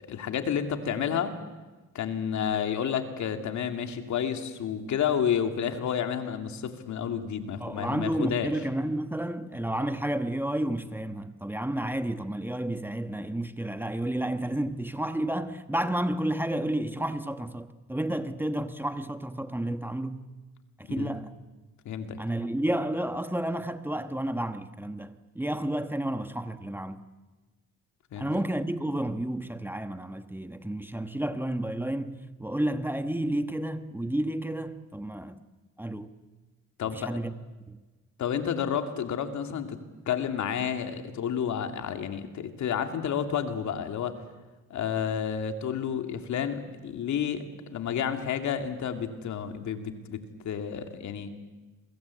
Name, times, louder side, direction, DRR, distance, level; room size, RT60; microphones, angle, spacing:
voice 1, 0.1-1.4 1.9-8.5 21.0-21.1 21.8-22.2 28.1-28.3 36.8-37.1 38.2-39.8 40.1-44.2 44.7-47.4 47.7-51.3, left 8 dB, 70° left, 2.7 m, -30 dB
voice 2, 7.6-20.3 20.8-21.3 22.2-27.0 28.2-35.4 35.8-36.1 36.9-37.3 37.7-37.8, right 1 dB, 5° right, 1.3 m, -31 dB
28.0 x 23.0 x 8.5 m
cardioid pair, 90°, 30 cm